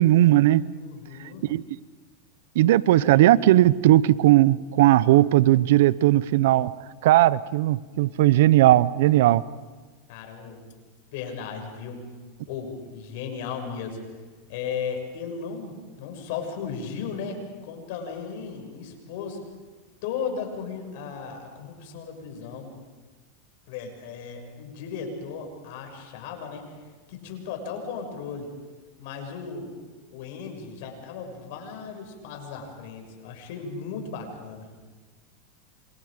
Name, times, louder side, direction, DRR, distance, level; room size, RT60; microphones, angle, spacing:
voice 1, 0.0-0.6 1.4-1.6 2.6-6.7 7.0-9.4, right 15 dB, 75° right, 19 dB, 0.7 m, -18 dB
voice 2, 0.7-1.5 10.1-10.6 11.1-12.1 12.5-14.0 14.5-19.4 20.0-22.7 23.7-28.5 29.0-29.8 30.1-34.7, left 6 dB, 65° left, 4 dB, 6.5 m, -36 dB
28.0 x 27.5 x 5.1 m, 1.3 s
supercardioid pair, 125°, 0 cm